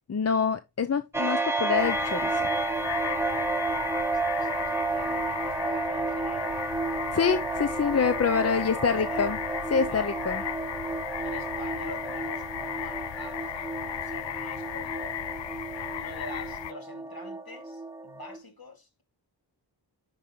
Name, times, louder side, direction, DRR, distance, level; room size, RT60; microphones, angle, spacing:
voice 1, 0.1-2.5 7.1-9.4 9.7-10.4, left 6 dB, 35° left, 0.5 m, -26 dB
sound 1, 1.1-18.4, right 3 dB, 5° right, 1.0 m, -31 dB
sound 2, 1.7-16.7, left 11 dB, 85° left, 0.6 m, -36 dB
voice 2, 3.5-6.6 8.5-9.4 9.9-10.1 11.1-15.1 15.9-19.0, left 2 dB, 60° left, 2.6 m, -45 dB
9.8 x 5.3 x 3.1 m
wide cardioid pair, 60°, 42 cm